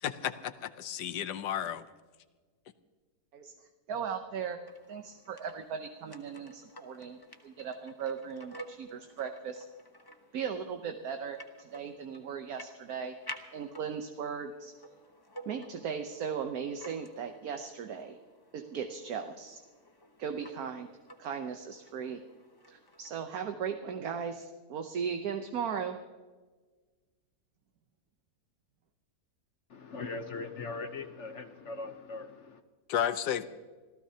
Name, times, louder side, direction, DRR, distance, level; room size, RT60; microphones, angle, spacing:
voice 1, 0.0-1.8 32.9-33.6, left 10 dB, 85° left, 12 dB, 1.4 m, -33 dB
voice 2, 3.9-4.6 4.9-9.6 10.3-13.1 13.5-14.7 15.5-18.2 18.5-19.6 20.2-20.9 21.2-22.2 22.7-26.0, right 7 dB, 65° right, 5 dB, 1.3 m, -37 dB
sound 1, 4.7-23.2, equal, 15° left, 0.9 m, -52 dB
voice 3, 29.7-32.6, left 3 dB, 55° left, 8 dB, 1.0 m, -40 dB
26.5 x 15.5 x 2.8 m, 1.4 s
omnidirectional pair, 1.7 m